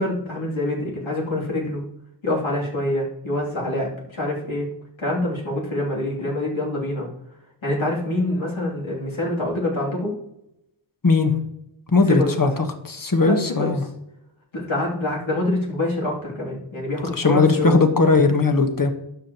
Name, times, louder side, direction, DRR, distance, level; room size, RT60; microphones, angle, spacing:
voice 1, 0.0-1.8 2.2-4.7 5.0-7.1 7.6-10.1 12.1-12.5 13.2-13.3 13.6-13.7 14.5-17.8, left 1 dB, 80° left, -4 dB, 2.8 m, -25 dB
voice 2, 11.0-11.3 11.9-12.5 12.8-13.8 17.1-18.9, left 3 dB, 45° left, 6 dB, 1.3 m, -18 dB
12.0 x 7.8 x 3.0 m, 0.82 s
wide cardioid pair, 65°, 47 cm